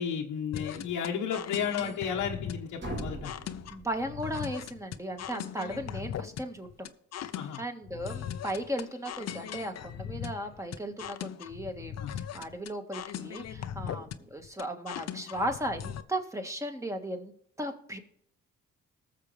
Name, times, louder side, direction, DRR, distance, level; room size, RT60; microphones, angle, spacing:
voice 1, 0.0-3.3 7.3-7.6 12.0-12.1 13.8-14.0, left 7 dB, 85° left, -2 dB, 1.3 m, -33 dB
sound 1, 0.5-16.0, left 9 dB, 60° left, 0.7 m, -39 dB
sound 2, 2.8-4.7, right 1 dB, 40° right, 4.1 m, -41 dB
voice 2, 3.7-6.9 7.6-17.3 17.6-18.0, right 1 dB, 10° right, 5 dB, 1.8 m, -36 dB
20.0 x 6.8 x 3.4 m, 0.70 s
cardioid pair, 90°, 30 cm